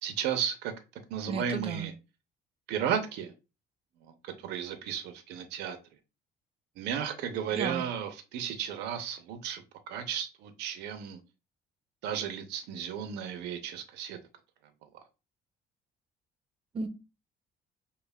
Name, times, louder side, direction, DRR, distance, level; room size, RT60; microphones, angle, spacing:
voice 1, 0.0-0.7 1.1-1.9 2.7-3.3 4.0-5.8 6.8-11.2 12.0-14.2, right 8 dB, 85° right, 0.6 m, -34 dB
voice 2, 1.3-1.9 7.5-7.8 16.7-16.9, right 4 dB, 35° right, 0.6 m, -33 dB
5.5 x 2.2 x 2.2 m
cardioid pair, 110°, 17 cm